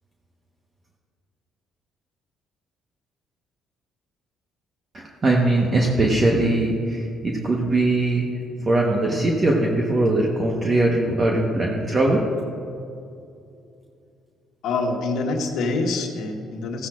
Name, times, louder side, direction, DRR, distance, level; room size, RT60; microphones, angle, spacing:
voice 1, 4.9-8.2 8.6-12.2, right 2 dB, 30° right, -1 dB, 1.2 m, -21 dB
voice 2, 14.6-16.9, left 3 dB, 75° left, 2 dB, 1.3 m, -25 dB
15.0 x 9.9 x 2.5 m, 2.5 s
cardioid pair, 95°, 0 cm